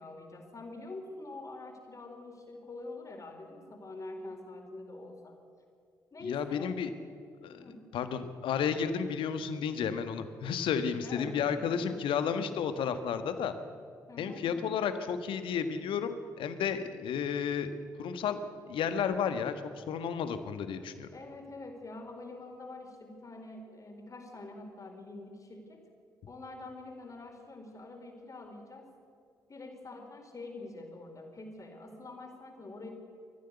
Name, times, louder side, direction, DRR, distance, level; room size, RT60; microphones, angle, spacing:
voice 1, 0.0-5.4 6.1-6.9 7.6-7.9 11.0-12.0 14.1-14.8 21.1-25.8 26.3-28.8 29.5-32.9, left 2 dB, 35° left, 3 dB, 4.5 m, -45 dB
voice 2, 6.2-6.9 7.4-7.7 7.9-13.5 14.2-17.7 18.0-18.4 18.7-21.1, left 7 dB, 60° left, 10 dB, 1.5 m, -32 dB
23.0 x 14.5 x 8.2 m, 2.3 s
figure-of-eight pair, 40°, 10 cm